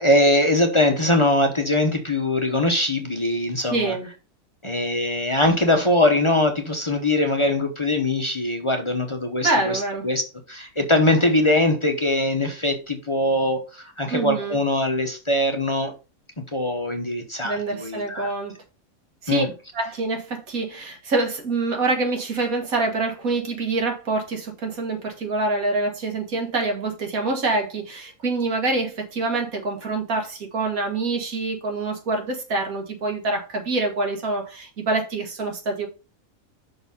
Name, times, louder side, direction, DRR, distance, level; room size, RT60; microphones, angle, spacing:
voice 1, 0.0-3.9 4.6-10.2 10.5-15.9 16.4-18.3 19.3-19.5, left 1 dB, 25° left, 0.9 m, -22 dB
voice 2, 3.7-4.1 9.4-10.1 14.1-14.6 17.4-18.6 19.2-19.5 19.7-35.9, right 3 dB, 90° right, 2.0 m, -26 dB
6.0 x 4.0 x 5.5 m
omnidirectional pair, 1.4 m